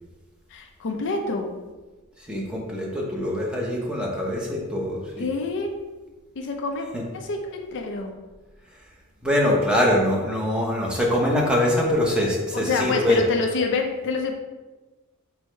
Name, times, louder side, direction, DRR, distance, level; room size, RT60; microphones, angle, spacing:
voice 1, 0.5-1.5 5.2-5.7 6.4-6.9 7.1-8.2 12.5-14.3, left 3 dB, 55° left, 3 dB, 0.4 m, -27 dB
voice 2, 2.3-5.3 9.2-13.2, left 1 dB, 5° right, -3 dB, 0.7 m, -23 dB
4.6 x 2.1 x 4.4 m, 1.2 s
head